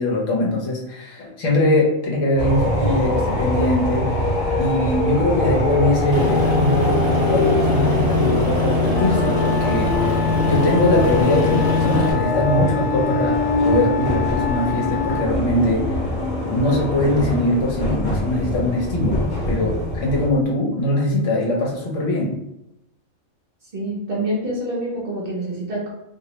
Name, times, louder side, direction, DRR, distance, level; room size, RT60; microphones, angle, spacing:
voice 1, 0.0-4.1 4.6-16.0 16.5-22.4, left 1 dB, 70° left, -2 dB, 1.1 m, -22 dB
sound 1, 2.4-20.3, left 1 dB, 40° left, 1.1 m, -23 dB
Aircraft, 6.1-12.1, left 2 dB, 20° right, 0.8 m, -22 dB
Wind instrument woodwind instrument, 8.9-15.3, left 11 dB, 90° left, 1.1 m, -29 dB
voice 2, 23.7-25.9, right 1 dB, 50° right, -3 dB, 0.8 m, -26 dB
3.1 x 2.6 x 2.9 m, 0.85 s
omnidirectional pair, 1.4 m